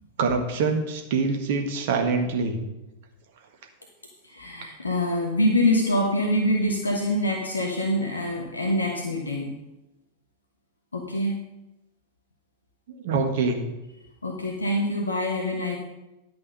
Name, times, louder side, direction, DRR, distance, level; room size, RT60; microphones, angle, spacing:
voice 1, 0.2-2.6 12.9-13.6, right 4 dB, 55° right, 4 dB, 1.6 m, -25 dB
voice 2, 4.2-9.6 10.9-11.4 14.2-15.8, left 1 dB, 80° left, 0 dB, 1.1 m, -25 dB
11.0 x 6.2 x 5.4 m, 0.98 s
figure-of-eight pair, 90°, 0 cm